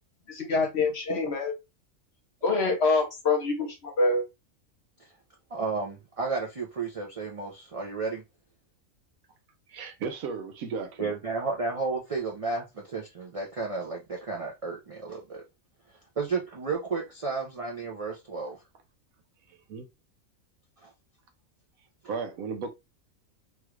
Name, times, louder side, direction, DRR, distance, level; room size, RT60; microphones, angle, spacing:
voice 1, 0.3-1.5 2.4-4.2, left 3 dB, 55° left, 1.1 m, -25 dB
voice 2, 5.5-8.2 11.0-15.4 16.2-18.6 20.8-20.9, right 4 dB, 60° right, 0.3 m, -32 dB
voice 3, 9.7-11.2 19.5-19.9 22.0-22.7, right 5 dB, 85° right, 1.2 m, -35 dB
3.1 x 2.4 x 3.0 m
omnidirectional pair, 1.4 m